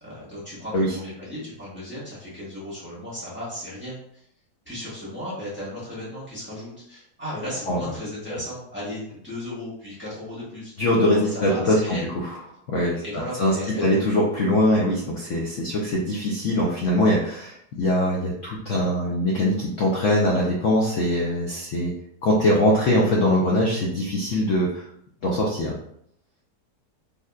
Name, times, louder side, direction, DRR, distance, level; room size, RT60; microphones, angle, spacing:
voice 1, 0.0-4.2 4.6-10.7 11.1-12.0 13.0-13.8, left 1 dB, 10° right, -10 dB, 1.2 m, -35 dB
voice 2, 10.8-12.3 12.7-13.0 13.4-21.9 22.2-24.8 25.2-25.8, left 1 dB, 65° left, -3 dB, 0.8 m, -22 dB
3.5 x 2.7 x 2.3 m, 0.69 s
omnidirectional pair, 1.8 m